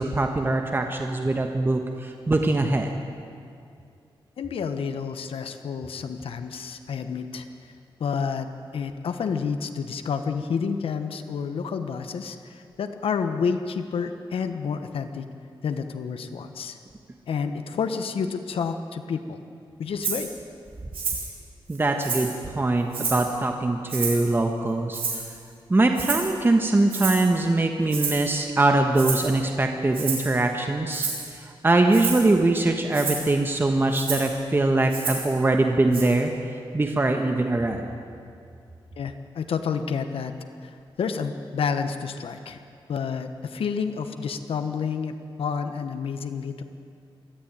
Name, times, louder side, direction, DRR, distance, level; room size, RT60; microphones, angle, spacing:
voice 1, 0.0-2.9 21.7-25.0 25.7-31.1 31.3-36.3 36.7-37.9, right 2 dB, 25° right, 4 dB, 1.4 m, -22 dB
voice 2, 4.4-7.5 8.0-8.5 8.7-15.3 15.6-16.8 17.3-19.4 19.8-20.3 39.0-40.3 40.6-42.6 42.9-46.6, left 6 dB, 85° left, 8 dB, 1.2 m, -29 dB
Rattle (instrument), 20.0-20.2 20.9-21.3 21.7-22.4 22.9-23.3 23.9-24.3 24.9-25.4 25.9-26.3 26.9-27.3 27.9-28.3 28.9-29.3 29.9-30.3 30.9-31.3 31.9-32.3 32.9-33.2 33.9-34.3 34.9-35.3 35.9-36.0, right 5 dB, 80° right, 7.2 m, -29 dB
23.0 x 14.5 x 9.0 m, 2.4 s
wide cardioid pair, 110°, 9 cm